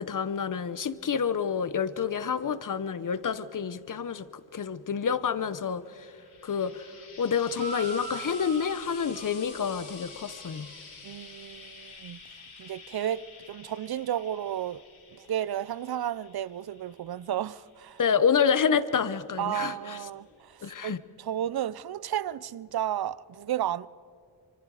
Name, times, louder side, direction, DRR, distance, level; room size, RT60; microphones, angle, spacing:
voice 1, 0.0-6.1 6.4-6.9 7.2-10.7 18.0-20.0 20.6-21.0, left 7 dB, 40° left, 1.0 m, -28 dB
Frying (food), 5.9-19.3 20.3-20.4, left 4 dB, 75° left, 7.3 m, -49 dB
sound 1, 7.5-10.8, right 4 dB, 20° right, 2.0 m, -42 dB
voice 2, 11.0-12.2 12.6-14.8 15.1-18.0 19.4-23.9, right 11 dB, 55° right, 0.6 m, -33 dB
26.0 x 24.5 x 4.9 m
cardioid pair, 80°, 46 cm